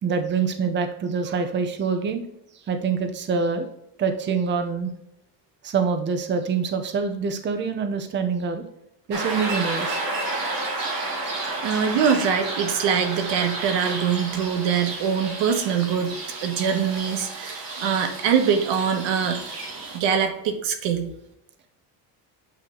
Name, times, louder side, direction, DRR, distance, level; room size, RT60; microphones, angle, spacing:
voice 1, 0.0-2.2 2.7-3.7 4.0-4.9 5.6-8.6 9.1-10.0, right 5 dB, 25° right, 7 dB, 0.7 m, -25 dB
sound 1, 9.1-20.0, right 2 dB, 50° right, 2.2 m, -31 dB
voice 2, 11.6-16.1 16.4-19.4 19.9-21.1, right 7 dB, 90° right, 6 dB, 1.2 m, -23 dB
8.4 x 3.2 x 3.7 m, 0.80 s
cardioid pair, 140°, 43 cm